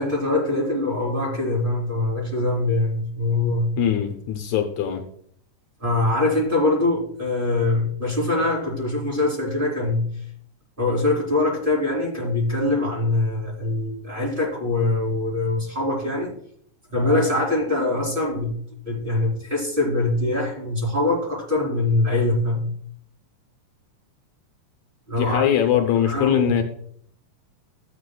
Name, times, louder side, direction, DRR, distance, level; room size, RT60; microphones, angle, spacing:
voice 1, 0.0-3.7 5.8-10.1 10.8-16.3 16.9-18.5 18.9-22.6 25.1-25.4 26.0-26.6, left 2 dB, 15° right, -4 dB, 2.7 m, -23 dB
voice 2, 3.8-5.1 25.2-26.6, left 10 dB, 75° left, 5 dB, 2.1 m, -21 dB
14.0 x 8.5 x 2.3 m, 0.63 s
omnidirectional pair, 3.4 m